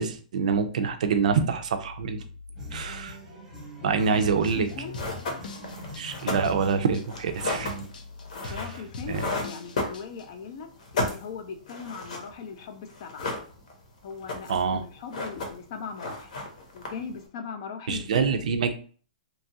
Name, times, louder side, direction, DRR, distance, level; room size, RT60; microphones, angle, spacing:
voice 1, 0.0-2.2 2.7-3.2 3.8-4.7 6.0-7.7 8.4-8.6 9.1-9.3 14.5-14.8 17.9-18.7, right 5 dB, 60° right, 7 dB, 0.4 m, -26 dB
sound 1, 2.5-7.9, equal, 5° right, 0.9 m, -42 dB
voice 2, 3.8-5.0 8.3-10.7 10.9-13.3 14.0-16.3 16.7-18.2, left 6 dB, 35° left, 8 dB, 0.3 m, -39 dB
sound 2, 4.2-10.2, left 3 dB, 90° left, 0.5 m, -41 dB
sound 3, 4.6-4.7 4.9-10.4 10.7-12.3 12.6-12.7 12.9-13.8 14.1-14.7 15.0-15.7 16.0-17.2, left 2 dB, 65° left, 0.8 m, -33 dB
2.8 x 2.3 x 2.7 m, 0.41 s
hypercardioid pair, 175°, 4 cm